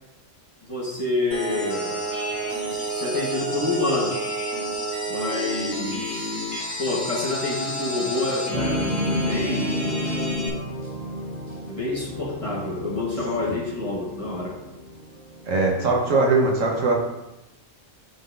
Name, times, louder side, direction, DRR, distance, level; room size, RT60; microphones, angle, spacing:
voice 1, 0.6-2.0 2.9-4.2 5.1-6.4 6.8-9.8 11.7-14.6, left 2 dB, 25° left, -4 dB, 1.4 m, -28 dB
sound 1, 1.3-10.5, equal, 60° left, 2.3 m, -29 dB
sound 2, 8.5-15.6, equal, 40° right, 2.0 m, -32 dB
voice 2, 15.5-17.0, right 3 dB, 85° right, -1 dB, 1.6 m, -21 dB
10.5 x 3.9 x 2.6 m, 0.93 s
omnidirectional pair, 1.3 m